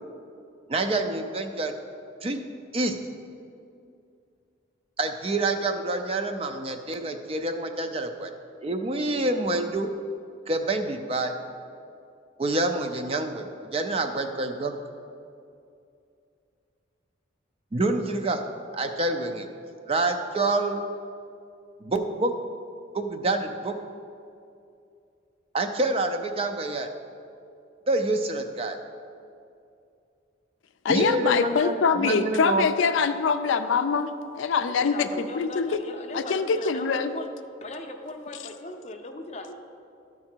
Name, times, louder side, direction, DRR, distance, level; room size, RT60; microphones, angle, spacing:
voice 1, 0.7-1.7 2.2-2.4 2.7-2.9 5.0-8.3 8.6-9.9 10.5-11.4 12.4-14.7 17.7-18.4 18.7-19.5 19.9-20.9 21.8-22.3 22.9-23.8 25.5-26.9 27.9-28.8 30.9-32.7, right 2 dB, 30° right, 6 dB, 0.4 m, -27 dB
voice 2, 30.8-35.8 36.1-37.1, left 5 dB, 80° left, 9 dB, 0.4 m, -24 dB
voice 3, 34.7-37.3 37.6-39.5, left 2 dB, 35° left, 5 dB, 0.6 m, -38 dB
12.5 x 4.8 x 4.5 m, 2.5 s
head